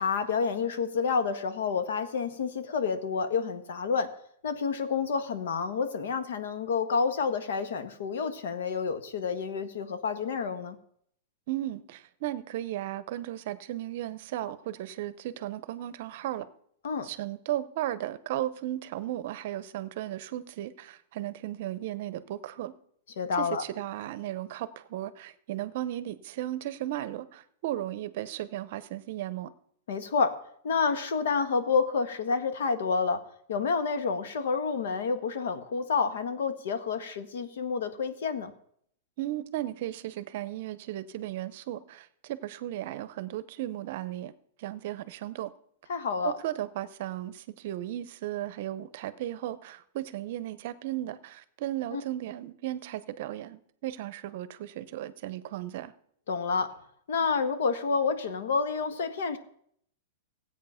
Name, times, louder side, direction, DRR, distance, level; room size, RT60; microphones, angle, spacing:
voice 1, 0.0-4.1 4.4-10.8 16.8-17.1 23.2-23.6 29.9-30.3 30.6-33.2 33.5-38.5 45.9-46.3 51.9-52.0 56.3-56.7 57.1-59.4, left 5 dB, 75° left, 10 dB, 1.5 m, -29 dB
voice 2, 11.5-16.5 17.0-22.7 23.4-29.5 39.2-44.3 44.6-45.5 46.2-55.9, right 13 dB, 50° right, 15 dB, 0.7 m, -35 dB
16.0 x 8.4 x 5.7 m, 0.68 s
supercardioid pair, 165°, 0 cm